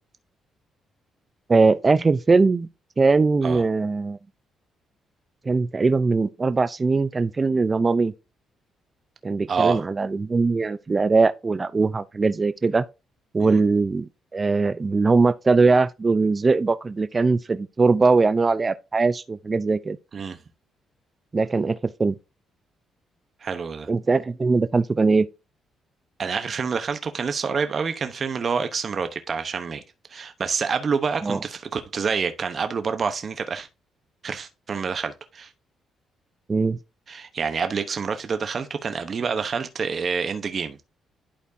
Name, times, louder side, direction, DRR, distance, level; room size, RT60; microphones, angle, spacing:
voice 1, 1.5-2.7 3.0-4.2 5.5-8.1 9.2-12.8 13.3-20.0 21.3-22.1 23.9-25.3 31.2-31.4 36.5-36.8, right 4 dB, 30° right, 0.5 m, -21 dB
voice 2, 9.5-9.8 13.4-13.6 20.1-20.4 23.4-23.9 26.2-29.8 30.1-33.7 34.2-35.5 37.1-40.8, right 5 dB, 45° right, 1.0 m, -27 dB
11.5 x 4.4 x 2.7 m
cardioid pair, 90°, 0 cm